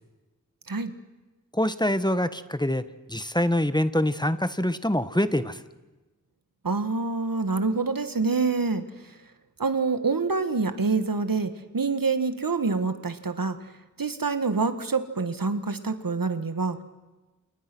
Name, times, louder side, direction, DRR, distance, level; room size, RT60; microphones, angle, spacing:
voice 1, 1.5-2.8 3.1-5.6, left 1 dB, 15° left, 12 dB, 1.4 m, -25 dB
voice 2, 6.6-8.8 9.6-13.6 14.0-16.8, right 4 dB, 90° right, 10 dB, 1.7 m, -26 dB
29.0 x 28.5 x 6.2 m, 1.1 s
wide cardioid pair, 45°, 33 cm